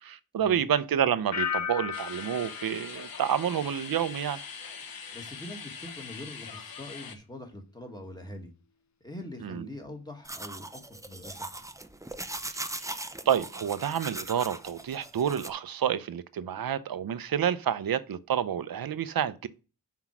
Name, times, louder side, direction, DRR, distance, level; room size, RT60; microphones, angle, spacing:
voice 1, 0.0-4.4 9.4-9.7 12.5-12.9 13.3-19.5, right 9 dB, 75° right, 0.6 m, -29 dB
sound 1, 1.3-4.2 4.5-5.0, left 8 dB, 50° left, 0.6 m, -36 dB
sound 2, 1.9-7.2, left 5 dB, 75° left, 1.0 m, -42 dB
voice 2, 5.1-8.5 9.0-11.5, left 1 dB, 10° left, 1.8 m, -43 dB
sound 3, 10.3-15.5, right 2 dB, 10° right, 0.5 m, -39 dB
5.8 x 4.6 x 6.0 m
wide cardioid pair, 75°, 36 cm